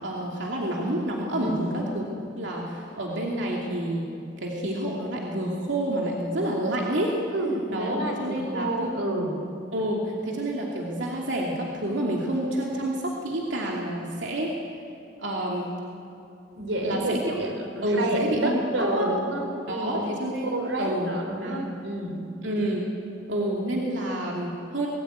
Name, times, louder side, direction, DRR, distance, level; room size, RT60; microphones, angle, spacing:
voice 1, 0.0-2.0 2.4-4.1 4.4-7.1 7.7-8.9 9.7-14.5 15.2-15.7 16.8-17.3 17.8-19.1 19.4-21.6 22.4-22.9 23.3-24.9, right 1 dB, 70° right, -2 dB, 2.7 m, -29 dB
voice 2, 1.4-1.8 7.3-9.5 16.5-20.0 20.5-22.2, right 1 dB, 90° right, 3 dB, 4.1 m, -29 dB
24.5 x 19.0 x 9.5 m, 2.7 s
head